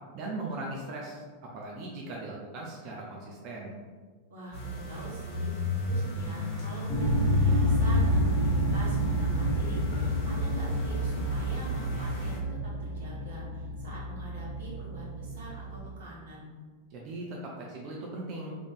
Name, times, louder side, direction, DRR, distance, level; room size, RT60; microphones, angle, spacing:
voice 1, 0.1-1.2 1.5-3.7 16.9-18.5, right 2 dB, 40° right, -2 dB, 0.6 m, -39 dB
voice 2, 4.3-5.5 5.8-16.5, equal, 60° right, -5 dB, 1.5 m, -44 dB
sound 1, 4.5-12.4, left 2 dB, 45° left, 1.2 m, -30 dB
sound 2, 6.9-15.9, right 1 dB, 5° left, 1.0 m, -31 dB
3.5 x 3.3 x 4.0 m, 1.5 s
figure-of-eight pair, 90°, 0 cm